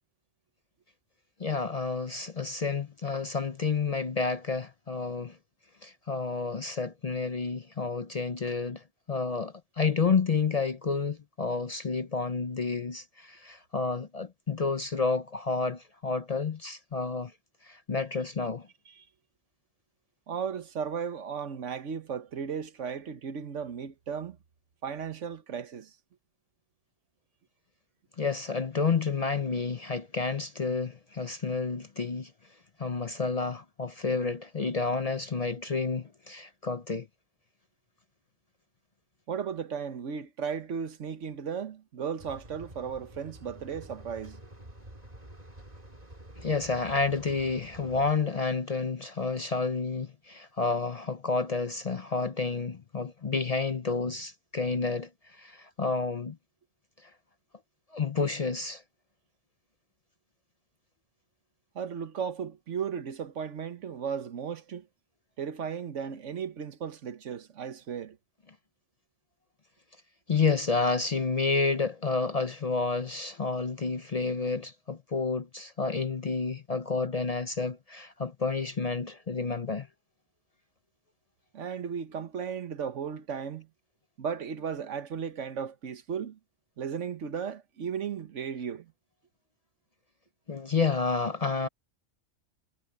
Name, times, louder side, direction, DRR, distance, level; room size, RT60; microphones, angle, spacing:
voice 1, 1.4-5.4 5.8-8.8 9.1-17.3 17.7-18.7 28.2-32.3 32.8-37.1 46.4-55.1 55.4-56.4 57.9-58.8 70.3-79.9 90.5-91.7, left 4 dB, 40° left, 0.6 m, -30 dB
voice 2, 20.3-24.4 24.8-25.9 39.3-44.4 61.7-64.9 65.4-68.2 81.5-83.7 84.2-86.4 86.8-88.9, right 7 dB, 80° right, 1.4 m, -35 dB
sound 1, 42.2-48.1, right 1 dB, 30° right, 3.5 m, -49 dB
omnidirectional pair, 1.2 m